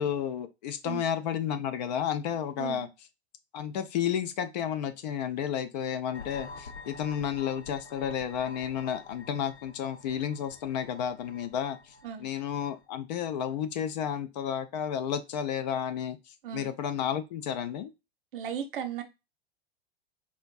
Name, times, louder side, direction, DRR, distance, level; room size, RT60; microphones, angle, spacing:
voice 1, 0.0-2.9 3.5-11.9 12.2-17.9, left 9 dB, 45° left, 0.4 m, -32 dB
voice 2, 2.6-2.9 12.0-12.3 16.4-16.7 18.3-19.0, right 9 dB, 55° right, 0.7 m, -36 dB
sound 1, 6.1-12.8, left 4 dB, 85° left, 0.6 m, -48 dB
4.3 x 2.5 x 2.3 m
figure-of-eight pair, 90°, 32 cm